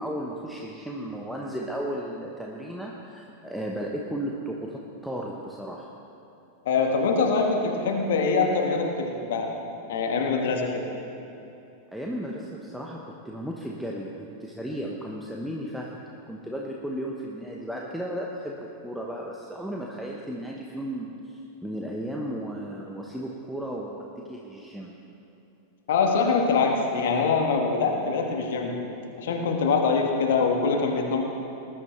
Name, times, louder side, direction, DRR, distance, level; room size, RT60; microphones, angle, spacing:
voice 1, 0.0-5.9 11.9-16.0 16.3-25.1, equal, ahead, -2 dB, 1.0 m, -35 dB
voice 2, 6.6-9.5 9.9-10.9 25.9-28.7 29.2-31.2, left 4 dB, 55° left, 2 dB, 1.5 m, -24 dB
20.0 x 11.5 x 3.3 m, 2.9 s
figure-of-eight pair, 90°, 0 cm